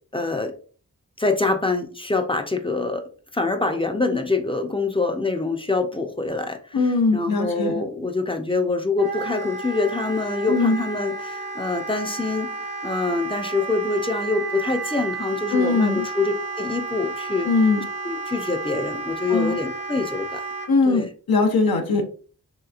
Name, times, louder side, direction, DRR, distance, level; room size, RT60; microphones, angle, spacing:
voice 1, 0.1-0.5 1.2-3.0 3.3-6.8 7.1-17.5 18.0-20.4 20.9-21.1, left 3 dB, 15° left, 5 dB, 0.5 m, -25 dB
voice 2, 6.7-7.8 10.5-10.8 15.5-16.0 17.5-17.8 19.3-19.6 20.7-22.1, left 3 dB, 75° left, 5 dB, 0.7 m, -20 dB
Wind instrument woodwind instrument, 9.0-20.7, right 3 dB, 85° right, 0.7 m, -32 dB
3.2 x 2.9 x 2.4 m, 0.41 s
cardioid pair, 45°, 37 cm